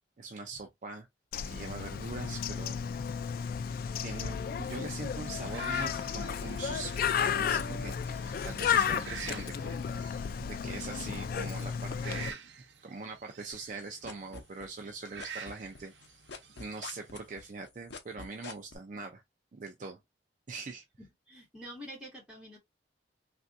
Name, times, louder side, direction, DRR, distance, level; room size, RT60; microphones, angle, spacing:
voice 1, 0.2-1.1 1.4-3.2 4.0-9.8 10.4-12.4 12.8-16.2 16.6-19.2 19.5-20.0 20.5-20.8, right 3 dB, 45° right, 0.5 m, -42 dB
Bird, 1.3-12.3, left 7 dB, 55° left, 0.3 m, -33 dB
sound 1, 5.2-17.5, right 6 dB, 90° right, 0.7 m, -49 dB
sound 2, 13.5-14.9 15.2-18.8, left 4 dB, 75° left, 0.7 m, -44 dB
voice 2, 21.0-22.6, equal, 5° right, 1.8 m, -47 dB
3.3 x 2.5 x 2.5 m
head